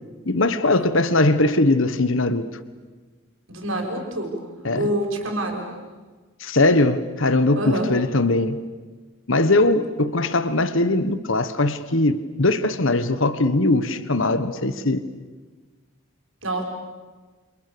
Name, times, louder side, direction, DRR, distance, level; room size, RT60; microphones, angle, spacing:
voice 1, 0.3-2.5 4.6-4.9 6.4-8.6 9.3-15.0, left 2 dB, 70° left, 12 dB, 1.4 m, -20 dB
voice 2, 3.5-4.3 4.7-5.7 7.6-7.9 16.4-16.6, right 1 dB, 70° right, 2 dB, 6.2 m, -26 dB
29.0 x 28.0 x 7.0 m, 1.3 s
head